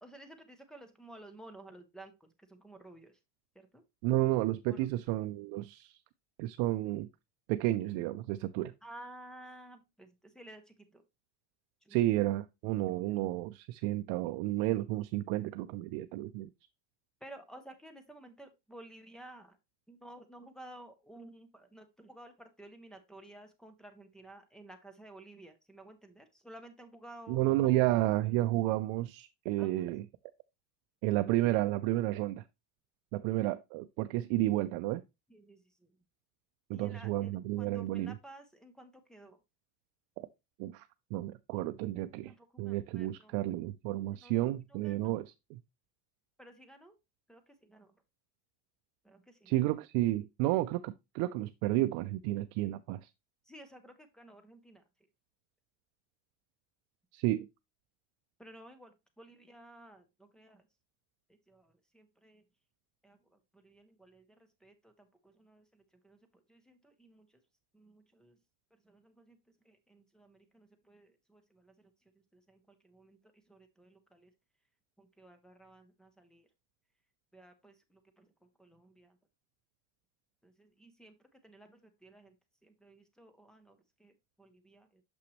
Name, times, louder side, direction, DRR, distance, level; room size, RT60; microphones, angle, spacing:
voice 1, 0.0-3.2 3.5-3.8 4.7-4.9 8.8-11.0 11.8-12.1 17.2-19.6 19.9-27.4 29.6-29.8 35.3-35.9 36.7-37.3 37.6-39.4 42.3-43.3 44.1-45.2 46.4-46.9 47.3-47.9 49.0-49.5 53.5-54.8 58.4-60.6 61.5-62.4 63.0-67.4 67.7-68.4 68.8-69.4 69.6-71.9 72.3-73.2 73.5-74.3 75.0-76.5 77.3-78.3 78.6-79.2 80.4-82.4 82.6-85.0, right 1 dB, ahead, 0.5 m, -54 dB
voice 2, 4.0-6.0 6.4-7.1 7.5-8.7 11.9-16.5 27.3-30.1 31.0-32.4 33.1-35.0 36.7-38.1 40.2-40.3 40.6-45.6 49.5-53.1 57.1-57.5, right 16 dB, 65° right, 0.5 m, -31 dB
6.3 x 5.7 x 3.0 m
cardioid pair, 145°, 50 cm